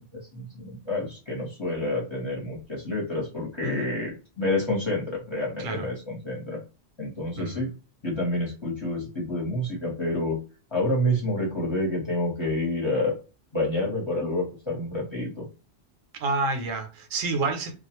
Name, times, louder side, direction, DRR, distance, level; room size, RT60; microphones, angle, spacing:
voice 1, 0.0-6.6 7.0-7.7 8.0-10.4 10.7-13.2 13.5-15.5, left 1 dB, 25° left, 0.9 m, -28 dB
voice 2, 3.6-3.9 5.6-5.9 7.4-7.6 16.2-17.8, right 3 dB, 90° right, 1.0 m, -29 dB
2.3 x 2.2 x 2.9 m
omnidirectional pair, 1.3 m